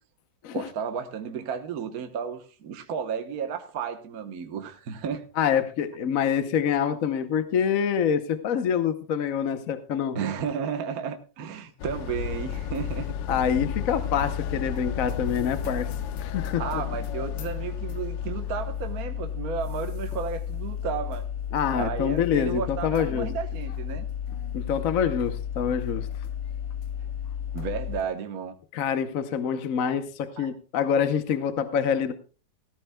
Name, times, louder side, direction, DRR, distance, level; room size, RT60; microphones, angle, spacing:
voice 1, 0.5-5.2 10.1-13.1 16.6-21.3 21.7-24.1 27.5-28.5 30.4-30.5, right 7 dB, 55° right, 1.5 m, -33 dB
voice 2, 5.4-10.2 13.3-15.9 16.2-16.8 21.5-23.3 24.5-26.1 28.7-32.1, left 8 dB, 55° left, 1.1 m, -26 dB
sound 1, 11.8-28.0, left 8 dB, 85° left, 1.4 m, -32 dB
17.5 x 15.0 x 2.2 m
omnidirectional pair, 2.0 m